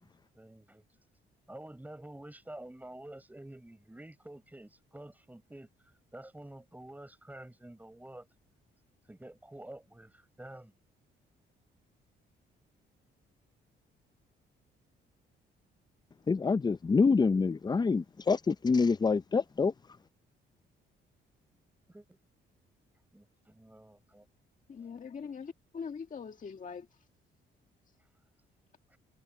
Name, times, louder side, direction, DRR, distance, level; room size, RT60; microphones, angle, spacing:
voice 1, 0.3-0.8 1.5-5.7 6.1-8.3 9.1-10.7 21.9-22.2 23.1-24.3 28.9-29.0, right 1 dB, 10° right, 6.5 m, -49 dB
voice 2, 16.3-19.7, left 4 dB, 20° left, 0.6 m, -26 dB
voice 3, 24.7-27.0, left 6 dB, 40° left, 1.7 m, -42 dB
cardioid pair, 90°, 20 cm